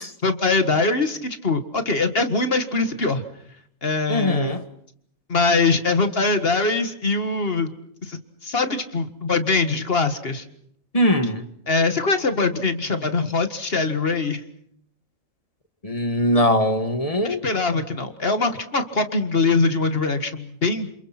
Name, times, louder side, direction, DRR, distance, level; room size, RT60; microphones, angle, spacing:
voice 1, 0.2-3.3 3.8-4.6 5.3-7.7 8.0-10.5 11.7-14.4 17.2-20.9, left 3 dB, 45° left, 2.0 m, -22 dB
voice 2, 4.1-4.6 10.9-11.4 15.8-17.4, equal, 25° left, 1.7 m, -21 dB
28.0 x 27.5 x 6.0 m
omnidirectional pair, 1.4 m